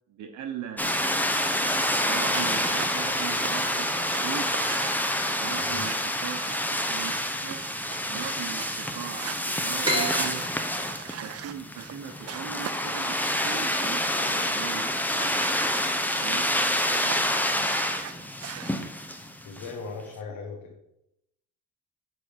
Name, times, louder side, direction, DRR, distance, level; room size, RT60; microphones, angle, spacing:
voice 1, 0.1-1.2 2.0-4.5 5.4-7.6 8.1-10.4 11.2-15.5 16.2-17.9, right 9 dB, 75° right, 5 dB, 1.0 m, -39 dB
sound 1, 0.8-19.7, left 1 dB, 5° left, 0.9 m, -28 dB
sound 2, 1.3-9.4 9.9-11.9 12.3-14.4 14.8-17.2 17.4-18.7, right 10 dB, 50° right, 0.6 m, -41 dB
sound 3, 9.8-13.2, right 1 dB, 15° right, 3.3 m, -33 dB
voice 2, 19.4-20.7, left 4 dB, 80° left, 0 dB, 1.5 m, -38 dB
8.4 x 4.1 x 6.7 m, 0.83 s
cardioid pair, 90°, 30 cm